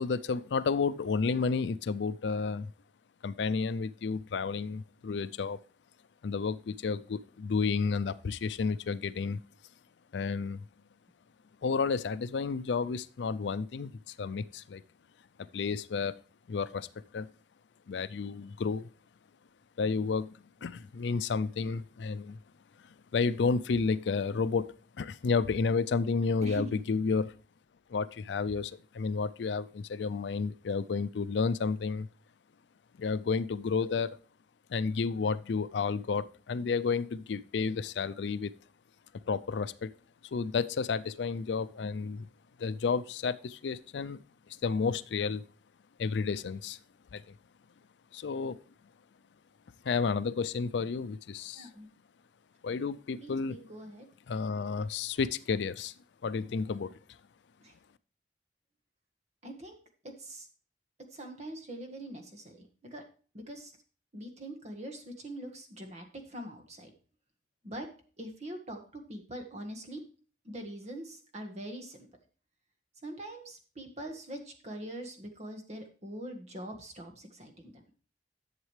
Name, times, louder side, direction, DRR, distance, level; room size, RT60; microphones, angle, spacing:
voice 1, 0.0-2.7 3.2-5.6 6.2-9.4 10.1-10.6 11.6-14.8 15.4-16.2 16.5-16.9 17.1-17.3 17.9-18.9 19.8-22.4 23.1-27.3 27.9-32.1 33.0-34.2 34.7-38.5 39.3-39.9 40.3-42.3 42.6-44.2 44.5-45.4 46.0-46.8 47.1-47.3 48.1-48.6 49.8-51.7 52.6-53.6 54.3-55.9 56.2-56.9, left 5 dB, 80° left, 15 dB, 0.4 m, -31 dB
voice 2, 1.2-1.6 21.1-21.2 26.4-26.8 51.5-51.9 53.2-54.1 57.6-57.7 59.4-59.8 60.0-60.5 61.1-63.0 63.3-63.7 64.1-66.9 67.6-67.9 68.2-70.0 70.4-72.1 73.0-77.8, right 1 dB, 40° right, 4 dB, 1.5 m, -43 dB
11.0 x 7.4 x 3.2 m, 0.40 s
head